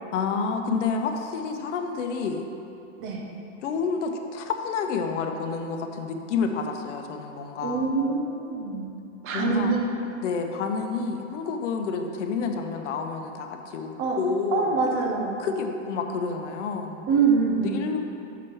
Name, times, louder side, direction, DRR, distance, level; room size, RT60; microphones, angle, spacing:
voice 1, 0.1-2.5 3.6-7.9 9.3-9.7 10.2-14.7 15.4-17.0 17.6-18.0, left 5 dB, 75° left, 5 dB, 0.8 m, -29 dB
voice 2, 7.6-8.9 9.2-10.1 14.0-14.2 14.5-15.4 17.1-17.9, right 4 dB, 35° right, 1 dB, 1.1 m, -25 dB
6.0 x 4.5 x 6.1 m, 2.8 s
hypercardioid pair, 125°, 36 cm